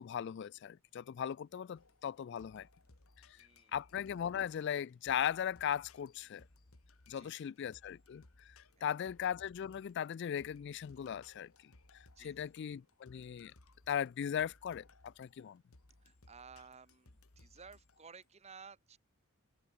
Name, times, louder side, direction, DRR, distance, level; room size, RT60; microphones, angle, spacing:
voice 1, 0.0-2.7 3.3-3.4 3.7-6.4 7.1-11.7 12.2-13.5 13.9-15.6, left 9 dB, 50° left, 0.3 m, -38 dB
sound 1, 1.8-18.3, left 2 dB, 70° left, 2.1 m, -64 dB
voice 2, 3.3-3.8 7.2-7.5 8.8-9.1 12.1-12.5 16.0-19.0, right 5 dB, 30° right, 0.9 m, -56 dB
head